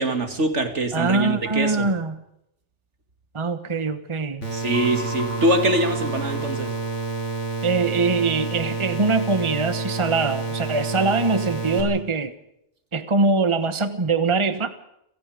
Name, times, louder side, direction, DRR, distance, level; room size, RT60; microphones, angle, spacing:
voice 1, 0.0-1.9 4.5-6.7, right 1 dB, 70° right, 7 dB, 2.8 m, -23 dB
voice 2, 0.9-2.2 3.3-4.4 7.6-12.3 12.9-14.7, right 3 dB, 25° right, 10 dB, 1.2 m, -23 dB
sound 1, 4.4-11.8, right 3 dB, 85° left, 6.4 m, -29 dB
sound 2, 4.7-7.3, equal, 40° left, 3.9 m, -38 dB
30.0 x 17.5 x 5.1 m, 0.79 s
omnidirectional pair, 1.2 m